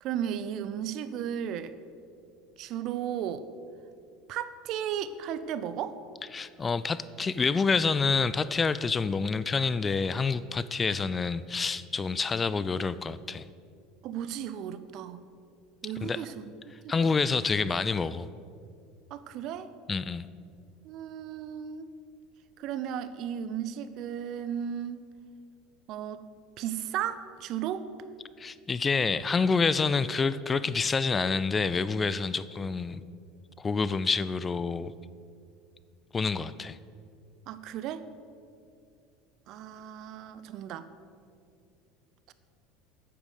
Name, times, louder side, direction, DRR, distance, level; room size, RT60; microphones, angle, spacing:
voice 1, 0.0-1.8 2.6-3.5 4.3-6.0 14.0-15.2 15.8-16.5 16.8-17.3 19.1-19.7 20.8-21.9 22.6-25.1 25.9-26.2 26.6-27.9 37.5-38.1 39.5-40.9, right 9 dB, 55° right, 13 dB, 0.6 m, -35 dB
voice 2, 6.3-13.5 16.0-16.2 16.9-18.3 19.9-20.3 28.4-33.0 33.6-34.9 36.1-36.8, left 4 dB, 25° left, 16 dB, 0.4 m, -28 dB
8.9 x 8.6 x 6.6 m, 2.4 s
hypercardioid pair, 80°, 0 cm